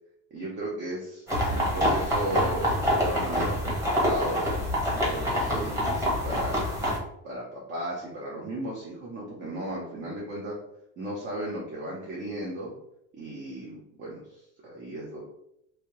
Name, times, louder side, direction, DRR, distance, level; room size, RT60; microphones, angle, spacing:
voice 1, 0.3-4.4 4.9-6.6 7.2-10.6 11.0-12.7 13.1-15.2, right 1 dB, 35° right, -4 dB, 0.9 m, -35 dB
sound 1, 1.3-7.0, equal, 10° right, 1.1 m, -26 dB
3.2 x 2.8 x 3.0 m, 0.78 s
cardioid pair, 130°, 33 cm